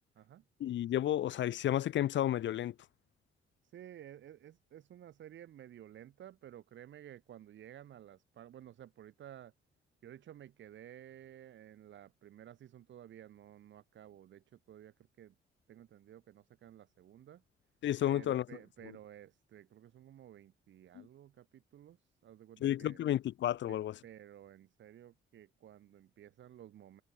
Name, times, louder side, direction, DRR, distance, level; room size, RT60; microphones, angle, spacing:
voice 1, 0.6-2.7 17.8-18.4 20.9-21.1 22.6-24.0, left 12 dB, 70° left, 1.1 m, -32 dB
voice 2, 3.6-9.5 10.0-15.4 15.7-17.4 18.1-23.0 23.7-27.0, right 11 dB, 70° right, 3.8 m, -54 dB
cardioid pair, 90°, 20 cm